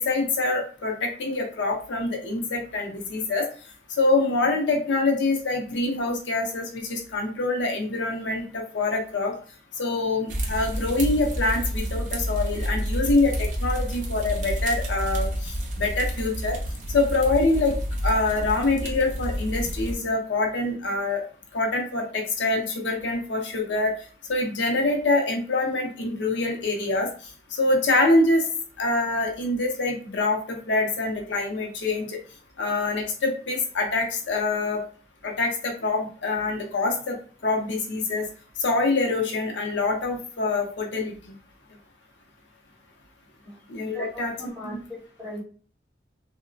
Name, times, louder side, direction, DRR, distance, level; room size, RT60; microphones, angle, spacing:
voice 1, 0.0-3.4 4.0-9.3 9.8-15.3 15.8-16.6 16.9-17.8 18.0-21.2 21.5-23.9 24.3-27.1 27.5-28.4 28.8-32.2 32.6-34.8 35.2-37.1 37.4-38.2 38.6-41.2 43.7-44.3, left 2 dB, 75° left, 1 dB, 0.6 m, -25 dB
sound 1, 10.3-19.9, equal, 40° right, 0.5 m, -29 dB
voice 2, 43.9-45.4, left 1 dB, 5° right, -7 dB, 1.3 m, -39 dB
2.8 x 2.1 x 2.5 m, 0.41 s
head